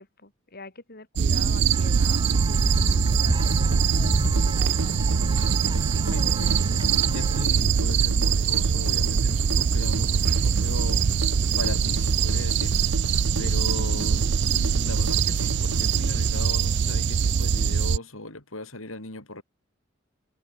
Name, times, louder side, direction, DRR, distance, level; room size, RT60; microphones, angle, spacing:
voice 1, 0.0-2.2 2.5-4.0 4.3-5.0, left 3 dB, 50° left, 5.2 m, -45 dB
sound 1, 1.2-18.0, right 6 dB, 60° right, 0.4 m, -23 dB
sound 2, 1.7-7.4, right 1 dB, 20° right, 2.4 m, -30 dB
sound 3, 3.4-16.4, right 1 dB, 80° right, 4.6 m, -34 dB
voice 2, 6.0-13.0 13.4-19.4, left 2 dB, 80° left, 5.9 m, -38 dB
head